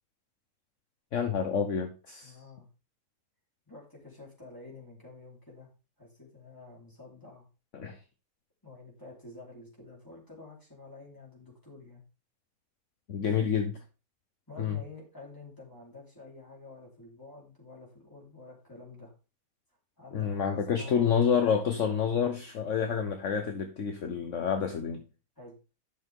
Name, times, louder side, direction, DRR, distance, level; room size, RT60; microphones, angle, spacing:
voice 1, 1.1-2.3 7.7-8.0 13.1-13.7 14.6-14.8 20.1-25.0, left 7 dB, 60° left, 5 dB, 1.3 m, -28 dB
voice 2, 2.2-2.7 3.7-5.7 6.0-7.5 8.6-12.0 13.2-13.5 14.5-19.1 20.0-21.0 25.4-25.5, left 3 dB, 15° left, -4 dB, 4.5 m, -49 dB
12.0 x 6.5 x 3.7 m, 0.32 s
omnidirectional pair, 1.5 m